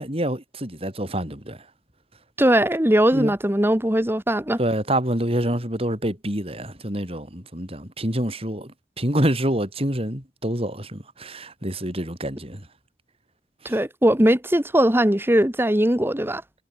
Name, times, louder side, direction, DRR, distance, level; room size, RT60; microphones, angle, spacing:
voice 1, 0.0-1.6 3.1-3.3 4.6-12.7 13.7-13.8, right 1 dB, 35° right, 6.8 m, -27 dB
voice 2, 2.4-4.6 13.6-16.4, right 1 dB, 15° right, 1.6 m, -20 dB
head